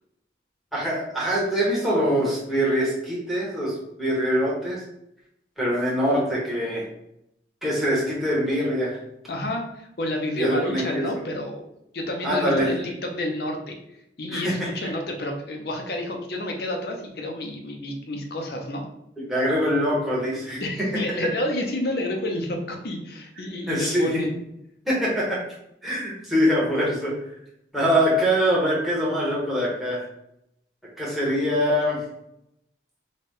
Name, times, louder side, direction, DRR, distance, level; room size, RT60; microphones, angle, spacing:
voice 1, 0.7-4.8 5.6-6.8 7.6-9.0 10.3-11.1 12.2-12.7 14.3-14.5 14.8-14.9 19.3-20.6 23.7-24.2 24.9-25.4 25.8-27.1 27.7-30.0 31.0-32.0, equal, ahead, -6 dB, 1.1 m, -23 dB
voice 2, 9.3-13.8 14.2-18.9 20.6-24.4, left 1 dB, 55° left, 2 dB, 0.6 m, -30 dB
4.2 x 2.3 x 3.6 m, 0.80 s
head